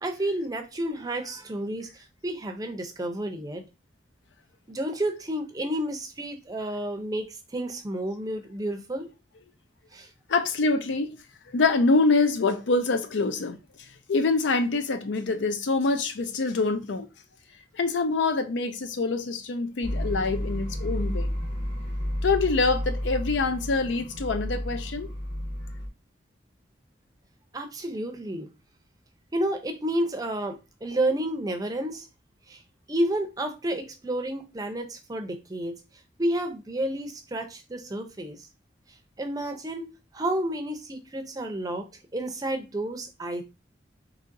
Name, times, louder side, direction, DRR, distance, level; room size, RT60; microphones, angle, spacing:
voice 1, 0.0-3.6 4.7-9.1 9.9-10.1 27.5-28.5 29.3-32.1 32.5-32.6 32.9-35.7 36.2-38.5 39.2-41.9 42.1-43.4, right 1 dB, 20° right, 0.5 m, -30 dB
voice 2, 10.3-11.1 11.5-13.6 14.1-17.1 17.8-21.3 22.2-25.1, left 3 dB, 85° left, 0.5 m, -25 dB
sound 1, 19.8-25.9, equal, 30° left, 0.9 m, -31 dB
3.9 x 2.9 x 2.5 m
head